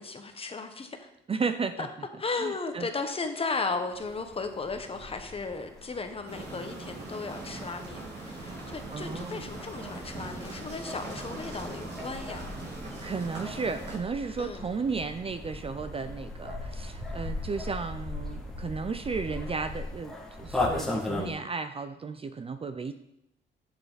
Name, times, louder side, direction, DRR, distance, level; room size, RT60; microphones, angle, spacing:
voice 1, 0.0-1.1 1.8-1.9 2.2-12.4 14.4-14.7, left 4 dB, 30° left, 7 dB, 1.0 m, -35 dB
voice 2, 1.3-1.9 2.4-2.9 8.9-9.5 13.0-22.9, right 5 dB, 30° right, 10 dB, 0.5 m, -34 dB
sound 1, 3.9-21.3, left 2 dB, ahead, 1.9 m, -39 dB
sound 2, 6.3-14.0, right 2 dB, 55° right, 3.0 m, -41 dB
7.7 x 7.4 x 4.0 m, 0.82 s
cardioid pair, 90°, 20 cm